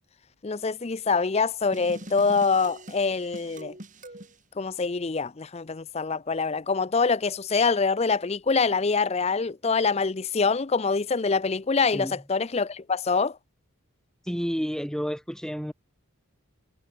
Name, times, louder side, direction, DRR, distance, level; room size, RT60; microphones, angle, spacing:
voice 1, 0.4-3.7 4.6-13.4, left 4 dB, 30° left, 0.5 m, -25 dB
sound 1, 1.7-4.4, right 1 dB, 35° right, 4.7 m, -43 dB
voice 2, 14.2-15.7, equal, 5° left, 2.1 m, -30 dB
head